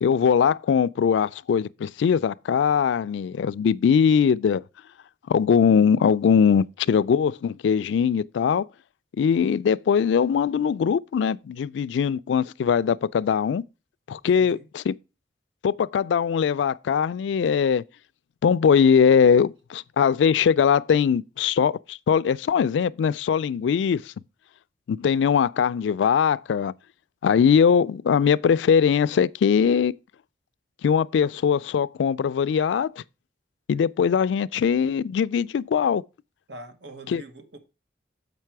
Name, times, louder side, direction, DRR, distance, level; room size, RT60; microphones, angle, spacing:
voice 1, 0.0-4.6 5.3-8.7 9.2-13.6 14.1-15.0 15.6-17.8 18.4-24.1 24.9-26.7 27.2-29.9 30.8-33.0 33.7-36.0 37.1-37.2, left 7 dB, 80° left, 0.3 m, -21 dB
voice 2, 14.2-14.7 36.5-37.6, right 2 dB, 85° right, 1.3 m, -43 dB
7.5 x 5.3 x 4.6 m
head